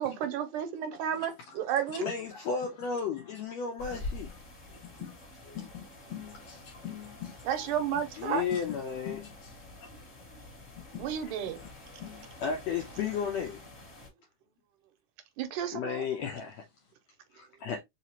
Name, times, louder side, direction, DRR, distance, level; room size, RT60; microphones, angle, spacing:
voice 1, 0.0-2.0 7.5-8.4 11.0-11.6 15.4-16.0, right 9 dB, 80° right, 2.2 m, -32 dB
voice 2, 1.0-2.9 3.2-3.4 3.9-4.0 4.3-4.4 4.8-8.0 8.4-9.5 9.8-9.9 10.8-12.4 16.1-16.2, left 9 dB, 65° left, 2.0 m, -46 dB
voice 3, 2.0-4.3 8.2-9.2 12.4-13.6 15.7-16.6 17.3-17.8, left 6 dB, 80° left, 1.6 m, -33 dB
sound 1, 3.8-14.1, left 2 dB, 30° left, 1.3 m, -47 dB
4.9 x 2.8 x 2.9 m
omnidirectional pair, 3.7 m